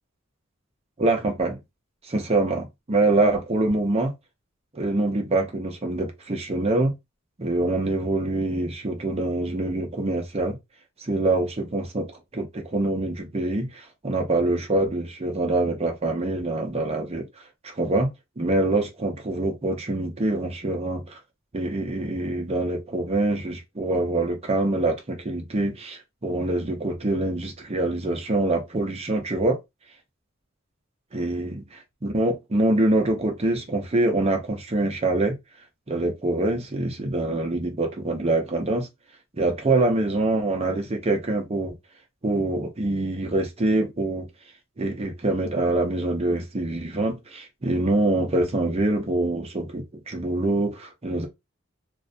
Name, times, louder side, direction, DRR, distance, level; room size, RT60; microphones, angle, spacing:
voice 1, 1.0-1.6 2.1-4.1 4.7-6.9 7.4-10.6 11.0-17.3 17.6-18.1 18.4-21.2 21.5-29.6 31.1-31.6 32.0-35.3 35.9-38.9 39.4-41.7 42.2-44.3 44.8-51.3, right 2 dB, 30° right, 0.6 m, -25 dB
2.4 x 2.1 x 2.5 m
head